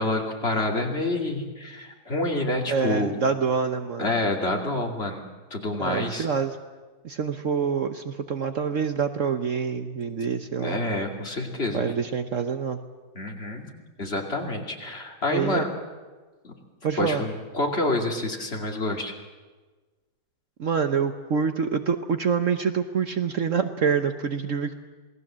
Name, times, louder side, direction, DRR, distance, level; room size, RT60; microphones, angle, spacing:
voice 1, 0.0-3.2 4.0-5.2 5.5-6.3 10.6-11.8 13.1-13.7 14.0-15.7 16.4-16.5 17.0-19.1, left 2 dB, 35° left, 1 dB, 2.9 m, -27 dB
voice 2, 2.7-4.1 5.8-6.6 7.0-10.8 11.7-12.8 15.3-15.7 16.8-17.2 20.6-24.8, right 6 dB, 55° right, 8 dB, 1.2 m, -26 dB
28.0 x 19.5 x 7.5 m, 1.3 s
omnidirectional pair, 1.8 m